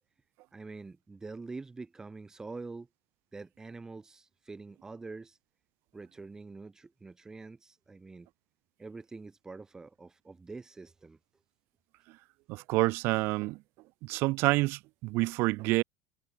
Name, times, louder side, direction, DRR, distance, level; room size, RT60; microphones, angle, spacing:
voice 1, 0.5-2.9 3.3-5.4 5.9-8.3 8.8-11.2, right 3 dB, 15° right, 6.7 m, -45 dB
voice 2, 12.5-13.6 14.0-15.8, right 22 dB, 60° right, 1.0 m, -28 dB
cardioid pair, 145°, 5 cm